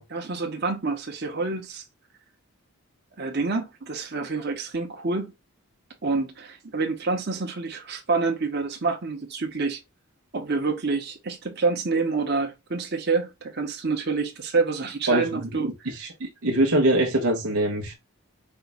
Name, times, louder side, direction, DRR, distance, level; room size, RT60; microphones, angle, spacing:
voice 1, 0.1-1.8 3.2-5.3 6.0-9.8 10.3-15.9, right 4 dB, 45° right, 1.0 m, -27 dB
voice 2, 15.9-17.9, right 1 dB, 80° right, 0.9 m, -23 dB
5.6 x 2.3 x 4.1 m
head